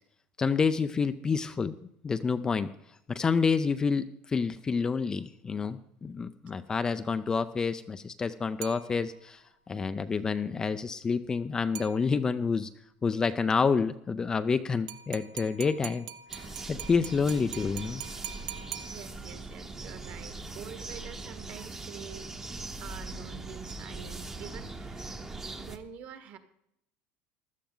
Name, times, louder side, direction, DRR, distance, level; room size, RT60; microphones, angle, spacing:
voice 1, 0.4-1.8 2.0-2.7 3.1-12.7 13.0-16.1 16.3-18.0, left 5 dB, 15° left, 10 dB, 0.4 m, -28 dB
sound 1, 8.6-9.4 11.8-12.5 14.9-19.5, right 11 dB, 75° right, 0.8 m, -44 dB
sound 2, 16.3-25.8, right 3 dB, 10° right, 0.9 m, -41 dB
voice 2, 18.3-22.3 22.6-25.3 25.6-26.4, right 8 dB, 45° right, 9 dB, 1.5 m, -47 dB
15.5 x 12.0 x 3.8 m, 0.76 s
cardioid pair, 165°, 4 cm